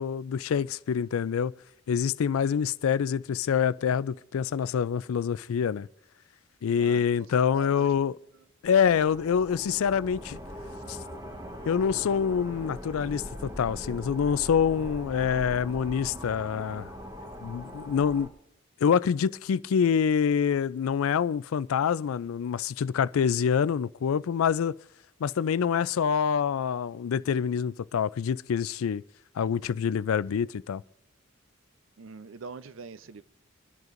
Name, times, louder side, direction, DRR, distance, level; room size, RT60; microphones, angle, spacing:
voice 1, 0.0-1.5 1.9-5.9 6.6-8.1 8.6-10.4 10.9-11.0 11.7-16.9 17.4-18.3 18.8-24.7 25.2-29.0 29.4-30.8, left 7 dB, 80° left, 0.4 m, -26 dB
voice 2, 6.8-7.9 8.3-8.4 32.0-33.2, right 4 dB, 65° right, 0.5 m, -43 dB
sound 1, 8.6-18.3, equal, 20° right, 1.1 m, -41 dB
25.5 x 11.0 x 2.6 m
head